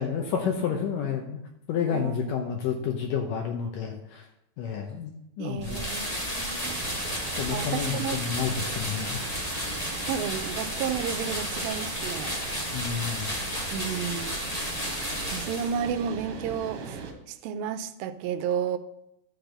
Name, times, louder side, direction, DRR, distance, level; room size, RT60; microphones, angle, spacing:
voice 1, 0.0-1.4 1.7-4.3 4.6-5.8 7.4-9.2 12.7-13.3, left 7 dB, 75° left, 2 dB, 2.4 m, -30 dB
voice 2, 1.9-2.6 5.4-6.8 7.5-8.2 9.8-12.4 13.7-14.4 15.3-18.8, right 8 dB, 90° right, 10 dB, 2.4 m, -32 dB
sound 1, 5.6-16.0, equal, 55° left, 0.4 m, -32 dB
sound 2, 6.6-17.1, right 5 dB, 70° right, 2.6 m, -41 dB
12.0 x 4.0 x 6.6 m, 0.81 s
omnidirectional pair, 4.1 m